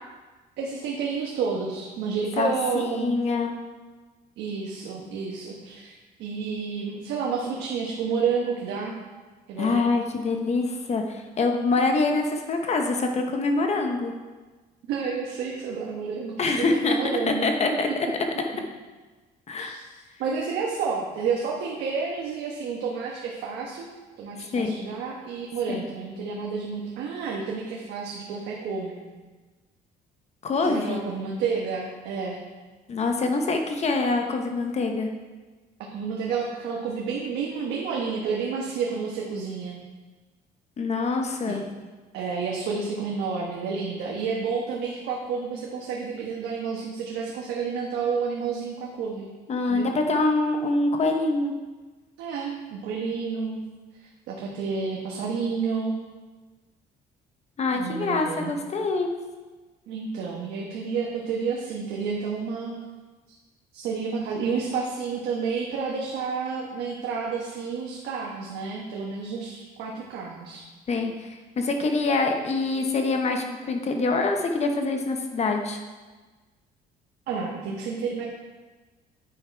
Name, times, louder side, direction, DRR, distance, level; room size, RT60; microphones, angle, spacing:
voice 1, 0.6-3.2 4.4-8.9 9.5-9.8 14.9-17.5 19.6-19.9 20.2-23.9 24.2-29.0 30.7-32.4 35.9-39.8 41.5-41.6 42.1-49.3 49.7-49.9 52.2-53.6 54.3-56.0 57.7-58.5 59.9-62.7 63.7-70.6 77.3-78.2, right 5 dB, 85° right, -3 dB, 1.3 m, -30 dB
voice 2, 2.4-3.5 9.6-14.1 16.4-17.0 17.3-17.9 19.5-19.8 24.5-24.8 25.7-25.9 30.4-31.0 32.9-35.1 40.8-41.6 49.5-51.5 57.6-59.1 70.9-75.8, left 3 dB, 40° left, 4 dB, 1.0 m, -25 dB
9.0 x 5.8 x 4.6 m, 1.3 s
cardioid pair, 110°, 17 cm